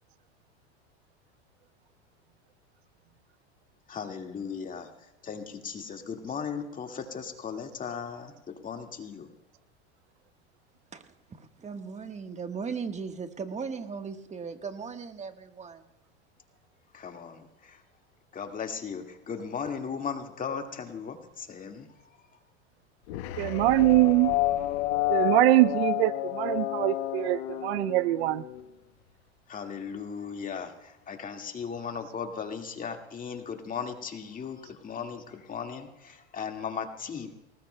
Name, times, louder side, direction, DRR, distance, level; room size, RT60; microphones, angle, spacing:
voice 1, 3.9-4.9 5.2-9.3 16.9-17.8 18.3-21.9 29.5-37.4, left 6 dB, 25° left, 1.9 m, -37 dB
voice 2, 10.9-15.9, right 5 dB, 20° right, 1.3 m, -37 dB
sound 1, 23.1-28.6, left 16 dB, 70° left, 1.2 m, -30 dB
voice 3, 23.4-24.3 25.1-28.5, right 19 dB, 65° right, 0.6 m, -23 dB
28.5 x 19.5 x 2.2 m
hypercardioid pair, 110°, 33 cm